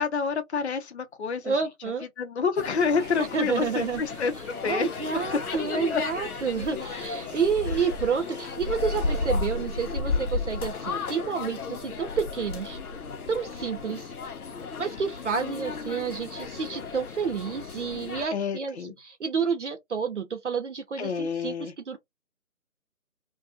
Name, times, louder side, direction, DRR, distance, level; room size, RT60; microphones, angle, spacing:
voice 1, 0.0-1.6 2.2-4.3 4.6-5.5 5.9-6.0 15.4-15.5 18.3-18.9 21.0-21.7, left 5 dB, 50° left, 0.5 m, -28 dB
voice 2, 1.4-2.0 3.3-4.0 4.7-12.8 13.3-14.1 14.8-18.7 19.0-22.0, right 6 dB, 55° right, 0.5 m, -29 dB
sound 1, 2.6-18.3, left 4 dB, 85° left, 0.7 m, -34 dB
sound 2, 3.0-9.4, right 1 dB, 30° right, 0.8 m, -49 dB
2.3 x 2.2 x 2.8 m
hypercardioid pair, 170°, 43 cm